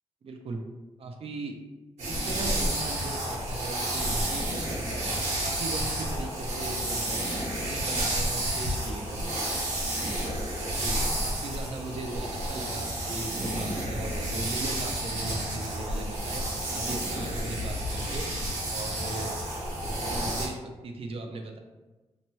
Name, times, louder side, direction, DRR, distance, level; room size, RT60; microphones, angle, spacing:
voice 1, 0.2-0.6 1.0-1.6 2.0-5.1 5.4-7.2 7.5-9.2 10.8-10.9 11.2-16.4 16.7-18.3 18.7-19.3 19.8-21.6, right 3 dB, 55° right, 3 dB, 0.4 m, -38 dB
sound 1, 2.0-20.5, right 1 dB, 70° right, 1.0 m, -31 dB
2.8 x 2.2 x 2.9 m, 1.1 s
cardioid pair, 100°, 12 cm